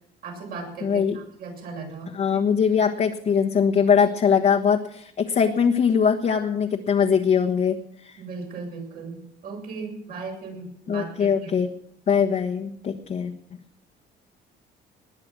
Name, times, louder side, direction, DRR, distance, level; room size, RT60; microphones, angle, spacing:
voice 1, 0.2-2.5 8.2-11.6, right 4 dB, 60° right, 0 dB, 7.4 m, -37 dB
voice 2, 0.8-1.2 2.1-8.2 10.9-11.7 12.1-13.3, left 7 dB, 45° left, 2 dB, 1.4 m, -22 dB
20.0 x 9.8 x 6.2 m, 0.70 s
cardioid pair, 110°, 17 cm